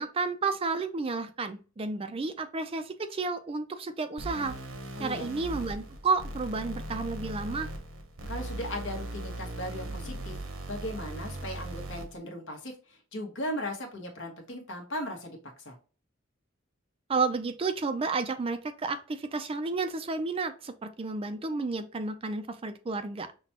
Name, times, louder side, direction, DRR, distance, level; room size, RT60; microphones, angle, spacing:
voice 1, 0.0-4.5 5.0-7.7 17.1-23.3, right 4 dB, 30° right, 9 dB, 0.4 m, -31 dB
sound 1, 4.2-12.2, right 1 dB, 80° right, 0.9 m, -39 dB
voice 2, 5.0-5.3 8.3-10.4 10.7-15.4 15.6-15.8, left 1 dB, 60° left, 2 dB, 1.2 m, -37 dB
5.9 x 2.3 x 2.8 m, 0.35 s
head